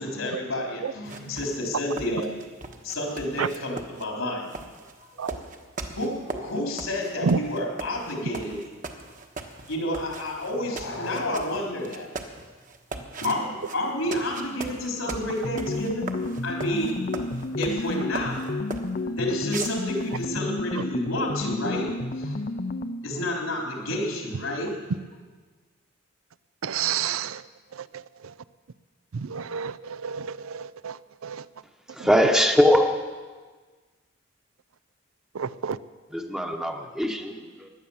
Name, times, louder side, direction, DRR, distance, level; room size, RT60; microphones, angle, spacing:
voice 1, 0.0-2.3 2.8-4.5 5.1-5.2 6.0-8.6 9.7-12.1 12.9-17.1 17.6-18.5 19.1-21.9 22.2-22.5 23.0-24.7, left 1 dB, 90° left, 0 dB, 3.9 m, -30 dB
sound 1, 1.0-19.0 19.4-20.2, right 3 dB, 40° right, 1.3 m, -39 dB
sound 2, 15.4-23.1, left 2 dB, 45° left, 0.6 m, -31 dB
voice 2, 26.6-28.4 29.1-31.5 32.0-32.1 35.3-35.8, right 6 dB, 90° right, 17 dB, 0.5 m, -30 dB
voice 3, 31.9-33.0 36.1-37.7, equal, 5° right, 4 dB, 1.0 m, -22 dB
17.0 x 11.0 x 7.2 m, 1.4 s
head